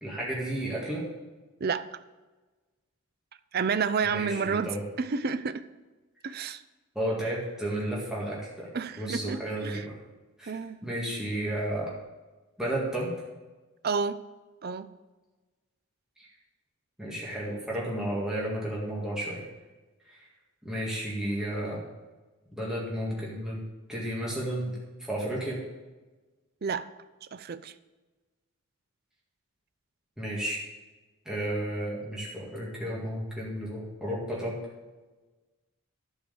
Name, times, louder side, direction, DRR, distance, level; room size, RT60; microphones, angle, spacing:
voice 1, 0.0-1.0 4.0-4.8 7.0-8.7 9.0-9.9 10.4-10.5 10.8-11.9 12.6-13.1 17.0-19.4 20.1-20.3 20.6-21.8 22.6-23.6 23.9-24.7 25.1-25.6 30.2-30.6 31.3-34.6, right 1 dB, 5° right, -6 dB, 1.9 m, -32 dB
voice 2, 3.5-5.7 6.2-6.6 8.7-9.8 10.5-10.8 13.8-14.2 14.6-14.9 26.6-26.9 27.3-27.7, right 5 dB, 45° right, 13 dB, 0.4 m, -30 dB
11.0 x 4.9 x 7.0 m, 1.2 s
head